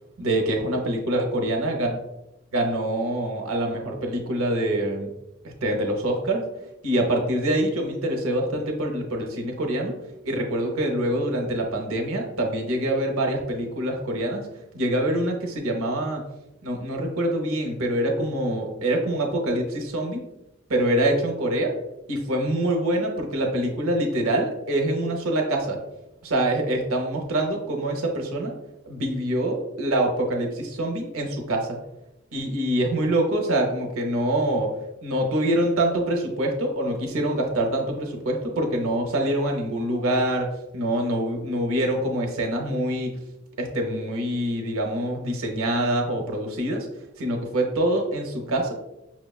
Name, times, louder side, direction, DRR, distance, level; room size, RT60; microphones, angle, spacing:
voice 1, 0.2-1.9 2.5-5.1 5.4-6.5 6.8-10.0 10.2-14.4 14.7-16.2 16.6-20.2 20.7-21.7 22.1-25.8 26.2-28.6 28.9-31.8 32.3-34.8 35.0-43.1 43.6-46.9 47.2-48.7, right 1 dB, 85° right, 2 dB, 0.7 m, -25 dB
5.8 x 2.2 x 2.3 m, 0.92 s
head